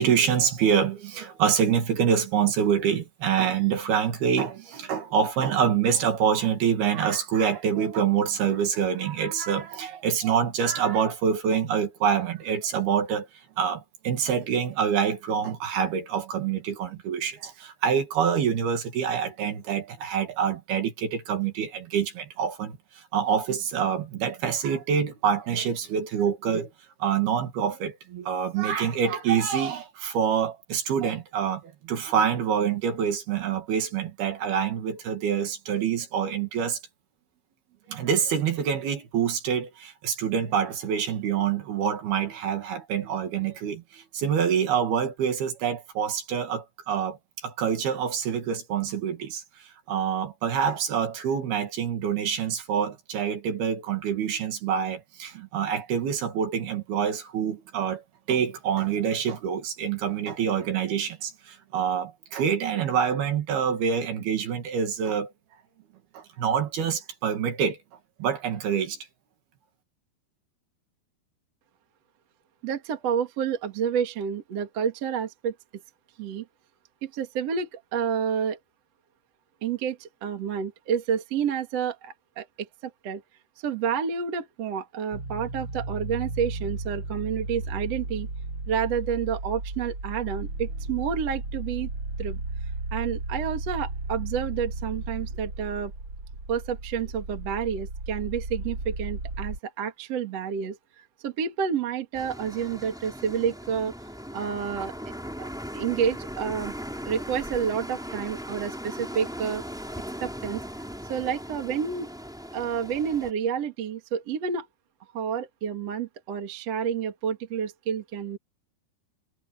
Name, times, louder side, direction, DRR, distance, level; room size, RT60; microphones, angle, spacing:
voice 1, 0.0-13.3 13.6-26.7 27.0-36.8 37.9-58.0 58.3-65.3 66.1-67.8 68.2-69.0, right 7 dB, 60° right, 3.9 m, -26 dB
voice 2, 72.6-75.5 76.2-76.4 77.0-78.6 79.6-83.2 83.6-88.3 88.7-91.9 92.2-92.4 92.9-95.9 96.5-103.9 104.3-104.9 105.4-106.7 107.1-109.6 110.2-110.6 111.1-112.1 112.5-114.7 115.1-118.4, right 7 dB, 45° right, 2.5 m, -29 dB
sound 1, 85.1-99.6, right 2 dB, 25° right, 7.1 m, -34 dB
sound 2, 102.1-113.3, equal, ahead, 4.7 m, -38 dB
omnidirectional pair, 5.3 m